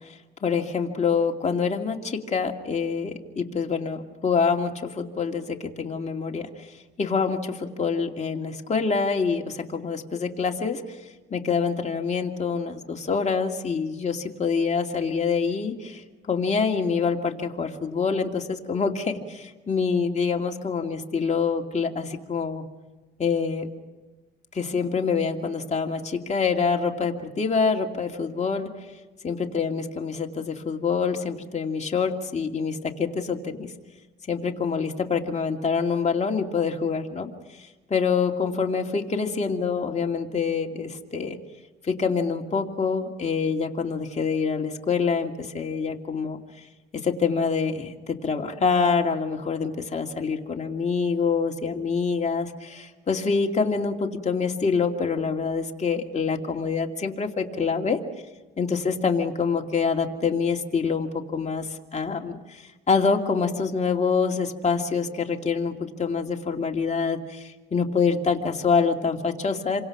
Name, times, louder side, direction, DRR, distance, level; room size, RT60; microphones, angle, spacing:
voice 1, 0.4-6.5 7.0-10.8 11.3-16.0 16.3-22.6 23.2-23.7 24.5-28.7 29.2-33.7 34.3-37.3 37.9-41.4 41.8-46.4 47.0-58.0 58.6-61.7 61.9-62.6 62.9-69.8, left 5 dB, 35° left, 2 dB, 2.4 m, -26 dB
27.5 x 25.0 x 6.0 m, 1.2 s
cardioid pair, 90°, 20 cm